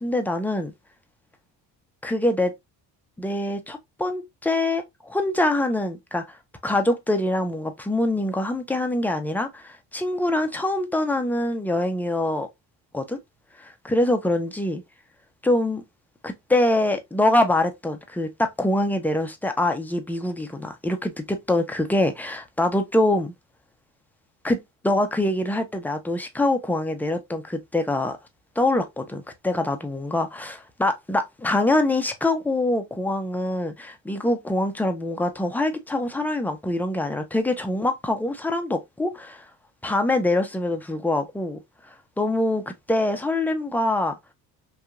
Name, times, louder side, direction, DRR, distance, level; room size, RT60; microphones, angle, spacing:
voice 1, 0.0-0.7 2.0-2.5 3.2-6.4 6.6-12.5 12.9-13.2 13.6-14.8 15.4-15.8 16.2-23.3 24.4-28.2 28.6-39.5 39.8-41.6 41.9-44.2, left 1 dB, 5° left, 0.4 m, -24 dB
2.8 x 2.3 x 2.3 m
supercardioid pair, 85°, 44 cm